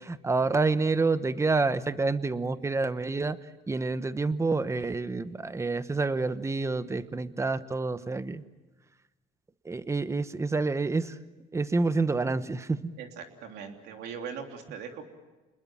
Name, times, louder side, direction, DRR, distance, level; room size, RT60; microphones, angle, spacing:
voice 1, 0.0-3.4 3.7-8.4 9.6-11.2 11.5-12.9, right 3 dB, 15° right, 13 dB, 1.0 m, -28 dB
voice 2, 13.0-15.0, right 7 dB, 80° right, 4 dB, 3.4 m, -40 dB
28.5 x 21.0 x 7.4 m, 1.2 s
cardioid pair, 110°, 17 cm